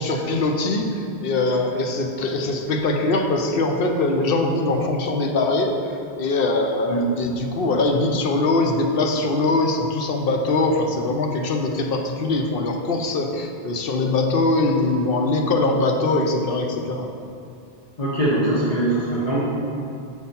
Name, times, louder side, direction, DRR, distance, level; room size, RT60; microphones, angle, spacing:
voice 1, 0.0-17.1, left 2 dB, 65° left, 3 dB, 0.8 m, -22 dB
voice 2, 18.0-19.4, right 1 dB, 40° left, -10 dB, 1.3 m, -22 dB
6.5 x 4.3 x 5.3 m, 2.6 s
omnidirectional pair, 1.0 m